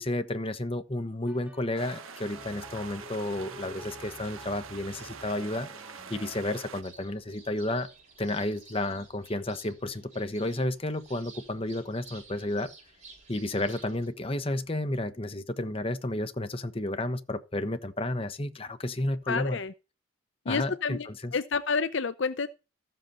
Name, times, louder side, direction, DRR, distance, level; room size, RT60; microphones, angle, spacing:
voice 1, 0.0-5.7 6.1-7.9 8.2-12.7 13.3-19.6 20.5-21.3, left 1 dB, 25° left, 1.1 m, -32 dB
sound 1, 1.3-6.4, left 1 dB, 5° right, 1.4 m, -50 dB
sound 2, 1.8-6.8, right 6 dB, 80° right, 1.2 m, -45 dB
sound 3, 6.8-14.1, right 4 dB, 35° right, 7.3 m, -53 dB
voice 2, 19.3-19.7 20.5-22.5, left 5 dB, 60° left, 0.6 m, -29 dB
14.0 x 7.9 x 4.3 m
head